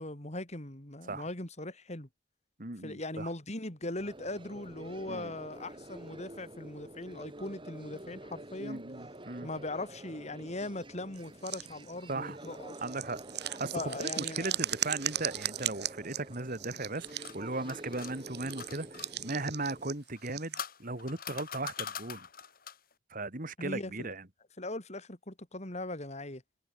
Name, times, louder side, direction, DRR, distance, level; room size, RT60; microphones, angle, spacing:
voice 1, 0.0-2.1 2.8-8.8 9.4-12.8 13.7-14.6 23.6-24.1 24.6-26.4, left 2 dB, 40° left, 4.0 m, -40 dB
voice 2, 2.6-3.3 5.1-5.3 8.6-9.5 12.1-12.4 12.8-13.2 13.5-22.3 23.1-24.2, right 2 dB, 50° right, 2.9 m, -37 dB
sound 1, 4.0-19.9, right 1 dB, 30° right, 6.6 m, -48 dB
sound 2, 11.1-11.9 12.4-17.4 18.0-20.6, right 12 dB, 65° right, 4.1 m, -37 dB
sound 3, 16.8-19.1 20.1-22.9, left 7 dB, 55° left, 6.3 m, -43 dB
head